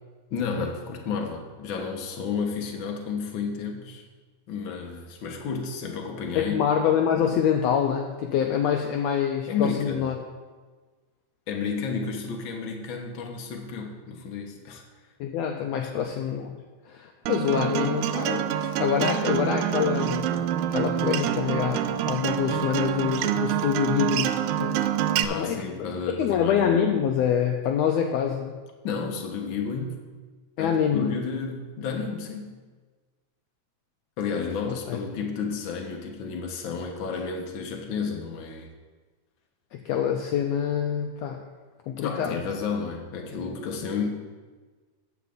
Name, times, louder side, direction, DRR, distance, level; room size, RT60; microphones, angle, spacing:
voice 1, 0.3-4.0 4.5-6.7 9.5-10.1 11.5-14.8 15.8-15.9 25.1-26.7 28.8-30.0 30.6-32.5 34.2-38.7 42.0-44.1, left 5 dB, 55° left, 2 dB, 1.5 m, -31 dB
voice 2, 6.3-10.2 15.2-16.6 16.9-20.4 20.7-24.8 25.3-25.9 26.1-28.5 30.6-31.1 34.6-35.0 39.7-41.4 41.9-42.4, left 8 dB, 80° left, 3 dB, 1.6 m, -26 dB
Acoustic guitar, 17.3-25.2, right 11 dB, 85° right, 2.0 m, -26 dB
14.5 x 9.7 x 2.6 m, 1.4 s
omnidirectional pair, 3.5 m